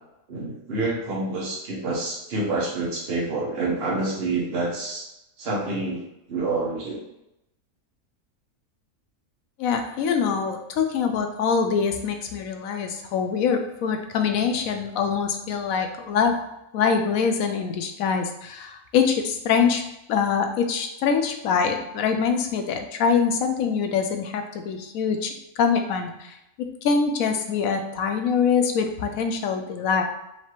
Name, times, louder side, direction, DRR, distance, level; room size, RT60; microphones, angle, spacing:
voice 1, 0.3-5.1 5.4-6.0 6.3-7.0, right 2 dB, 50° right, -3 dB, 1.2 m, -27 dB
voice 2, 9.6-16.4 16.7-19.8 20.1-26.4 26.8-30.0, left 6 dB, 85° left, 5 dB, 1.0 m, -24 dB
4.8 x 2.8 x 3.0 m, 0.87 s
omnidirectional pair, 1.4 m